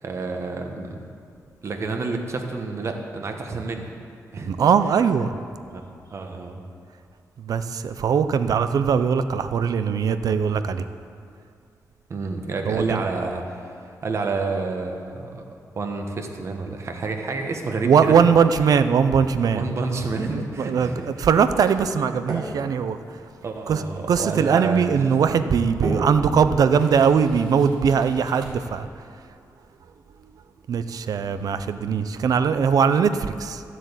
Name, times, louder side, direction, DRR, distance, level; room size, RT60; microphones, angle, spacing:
voice 1, 0.0-1.0 1.6-3.9 4.3-4.5 5.2-5.3 5.7-5.8 6.1-6.6 12.1-13.7 14.0-15.4 15.7-18.2 19.5-21.3 23.4-25.2, right 3 dB, 45° right, 4 dB, 1.3 m, -29 dB
voice 2, 4.4-5.3 7.4-10.8 12.7-13.0 17.8-19.6 20.6-23.0 23.7-23.8 24.1-28.9 30.7-33.6, right 6 dB, 65° right, 11 dB, 0.6 m, -20 dB
sound 1, 19.0-28.8, right 3 dB, 90° right, 2.1 m, -38 dB
12.5 x 7.5 x 8.2 m, 2.5 s
wide cardioid pair, 165°, 7 cm